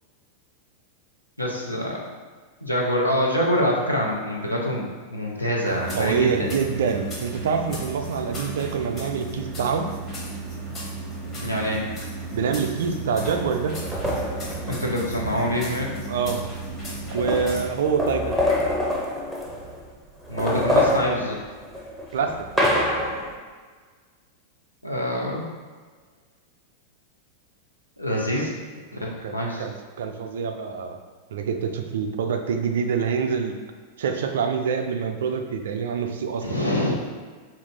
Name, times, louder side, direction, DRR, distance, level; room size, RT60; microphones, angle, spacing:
voice 1, 1.4-2.0 2.6-6.6 11.4-11.8 14.7-16.0 20.3-21.4 24.8-25.5 28.0-28.5 28.9-29.7 36.4-37.0, equal, 90° left, -2 dB, 0.5 m, -25 dB
sound 1, 5.6-17.7, right 2 dB, 25° left, 1.1 m, -34 dB
voice 2, 5.9-9.9 12.3-13.8 16.1-16.4 17.1-18.4 22.1-22.3 28.3-28.5 29.2-31.0 31.3-33.5 34.0-36.4, right 6 dB, 60° right, 5 dB, 0.3 m, -26 dB
sound 2, 13.2-15.4 16.4-16.5 16.7-19.8 20.2-23.3, left 1 dB, ahead, 0.6 m, -26 dB
Meow, 15.1-15.6 16.1-16.2 18.3-18.9 20.5-20.6 21.1-21.4, left 1 dB, 55° left, 0.9 m, -44 dB
2.9 x 2.4 x 3.4 m, 1.5 s
figure-of-eight pair, 90°, 0 cm